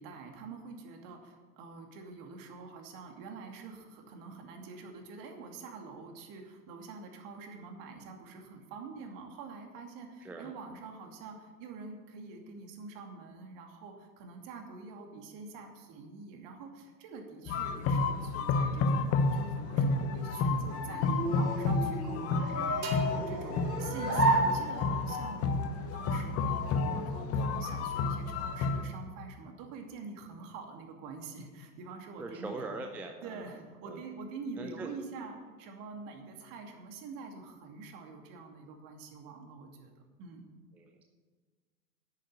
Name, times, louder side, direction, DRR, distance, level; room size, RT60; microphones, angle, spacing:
voice 1, 0.0-32.7 33.2-39.9 40.2-40.5, right 4 dB, 40° right, 3 dB, 2.6 m, -46 dB
sound 1, 17.5-28.9, left 4 dB, 30° left, 1.1 m, -31 dB
sound 2, 20.3-25.2, right 2 dB, 85° right, 3.3 m, -33 dB
sound 3, 22.8-26.5, right 5 dB, 65° right, 2.8 m, -47 dB
voice 2, 32.2-33.5 33.9-34.0 34.6-34.9 40.7-41.0, right 3 dB, 5° right, 3 dB, 0.3 m, -41 dB
10.5 x 9.0 x 8.2 m, 1.4 s
figure-of-eight pair, 90°, 49 cm